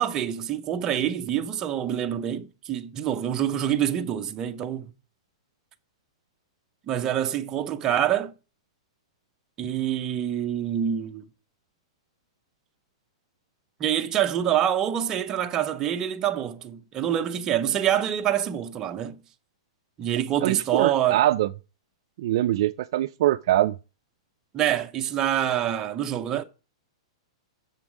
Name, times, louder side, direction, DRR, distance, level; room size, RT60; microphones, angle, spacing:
voice 1, 0.0-4.9 6.9-8.3 9.6-11.3 13.8-19.1 20.0-21.2 24.5-26.4, right 10 dB, 20° right, 0.7 m, -26 dB
voice 2, 20.4-21.5 22.2-23.8, right 14 dB, 55° right, 0.3 m, -23 dB
7.0 x 5.5 x 6.1 m
hypercardioid pair, 160°, 3 cm